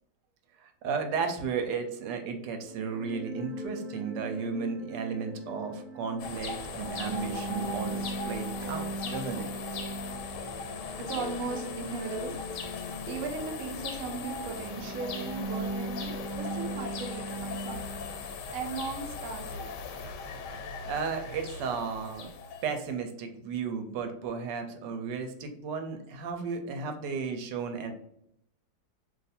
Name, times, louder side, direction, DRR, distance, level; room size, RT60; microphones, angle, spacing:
voice 1, 0.6-9.5 20.9-22.3 22.6-27.9, right 5 dB, 85° right, 6 dB, 1.2 m, -34 dB
sound 1, 2.6-18.3, right 1 dB, 30° right, 1.1 m, -39 dB
sound 2, 6.2-22.9, left 4 dB, 90° left, 1.2 m, -39 dB
voice 2, 11.0-12.3 13.1-17.8 18.5-20.1 20.5-20.6, right 4 dB, 65° right, 3 dB, 0.9 m, -37 dB
2.6 x 2.5 x 4.1 m, 0.73 s
omnidirectional pair, 1.8 m